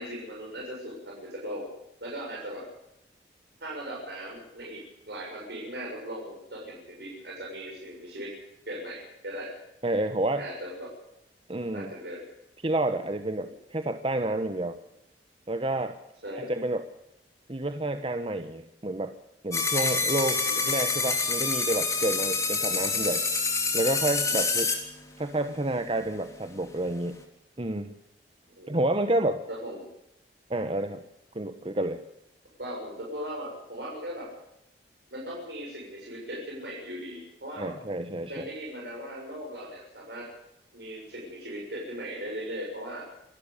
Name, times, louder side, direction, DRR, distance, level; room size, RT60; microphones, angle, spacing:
voice 1, 0.0-1.7 2.0-2.7 3.6-4.8 5.1-8.3 8.7-9.6 10.4-10.9 11.7-12.2 16.2-16.5 20.4-20.8 24.4-24.5 28.6-28.8 29.5-29.8 32.6-34.3 35.1-37.7 38.1-40.3 40.7-43.1, equal, 70° right, -3 dB, 7.0 m, -38 dB
voice 2, 9.8-10.5 11.5-11.9 12.6-14.8 15.5-16.0 16.4-16.8 17.5-19.1 19.4-23.2 23.7-24.7 25.2-27.2 27.6-27.9 28.7-29.4 30.5-31.0 31.3-32.0 37.6-38.4, right 1 dB, 30° right, 8 dB, 1.1 m, -29 dB
sound 1, 19.5-24.7, left 4 dB, 15° left, 3.3 m, -27 dB
27.0 x 12.5 x 8.5 m, 0.84 s
head